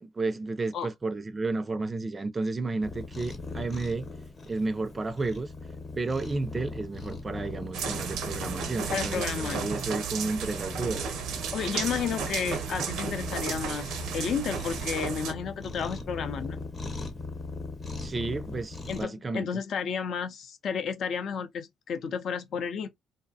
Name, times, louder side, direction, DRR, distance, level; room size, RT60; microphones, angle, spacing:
voice 1, 0.0-4.0 4.5-5.5 5.9-9.2 9.5-11.0 18.0-19.5, right 3 dB, 25° right, 0.4 m, -32 dB
Cat, 2.8-19.0, left 3 dB, 40° left, 0.8 m, -40 dB
sound 1, 7.7-15.3, right 6 dB, 90° right, 0.5 m, -34 dB
voice 2, 8.9-9.6 11.5-16.6 18.9-22.9, left 6 dB, 65° left, 0.5 m, -32 dB
2.6 x 2.1 x 2.6 m
cardioid pair, 90°, 0 cm